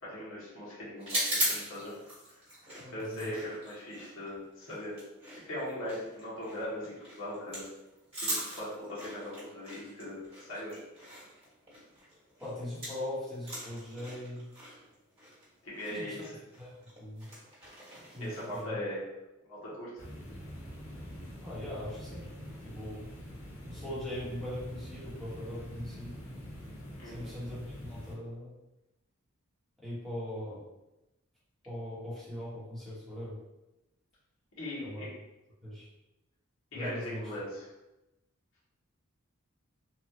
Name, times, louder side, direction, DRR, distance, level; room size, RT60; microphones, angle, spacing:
voice 1, 0.0-1.9 2.9-5.0 5.5-7.7 8.2-10.8 15.6-16.3 17.9-19.0 19.5-20.0 27.0-27.4 34.6-35.1 36.7-37.7, left 1 dB, 70° left, -7 dB, 1.2 m, -40 dB
sound 1, 1.0-13.1 13.3-18.6, right 1 dB, 25° right, 1.3 m, -39 dB
voice 2, 2.8-3.3 12.4-14.5 15.9-16.2 16.6-17.3 18.1-18.8 21.4-22.3 22.6-23.0 23.7-26.1 27.0-28.5 29.8-30.6 31.6-33.4 34.8-35.1 35.6-35.9 36.7-37.3, left 1 dB, ahead, -10 dB, 1.1 m, -40 dB
sound 2, 20.0-28.2, equal, 90° left, 0.9 m, -45 dB
3.1 x 2.3 x 2.8 m, 0.96 s
head